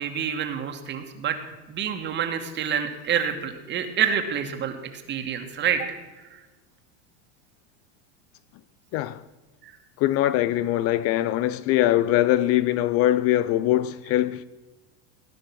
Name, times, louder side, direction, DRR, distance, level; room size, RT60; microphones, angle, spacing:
voice 1, 0.0-1.4 1.7-6.0 9.6-9.7, right 8 dB, 35° right, 2.3 m, -27 dB
voice 2, 8.9-9.2 10.0-14.4, left 13 dB, 45° left, 0.6 m, -22 dB
19.5 x 10.5 x 6.3 m
supercardioid pair, 130°, 32 cm